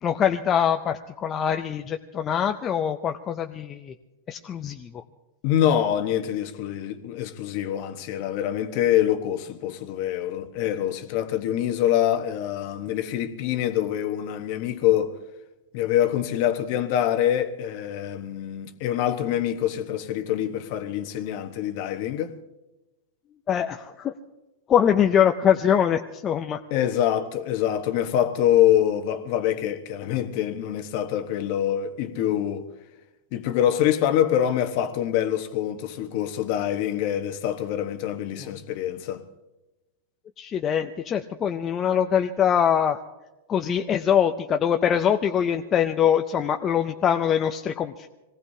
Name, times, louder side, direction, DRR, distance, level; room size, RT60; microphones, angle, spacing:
voice 1, 0.0-3.9 4.3-5.0 23.5-24.1 24.7-26.6 40.4-43.0 43.5-48.1, left 8 dB, 20° left, 0.5 m, -23 dB
voice 2, 5.4-15.2 15.7-22.4 26.7-32.7 33.3-39.2, left 11 dB, 40° left, 1.1 m, -25 dB
26.0 x 19.0 x 2.8 m
supercardioid pair, 170°, 0 cm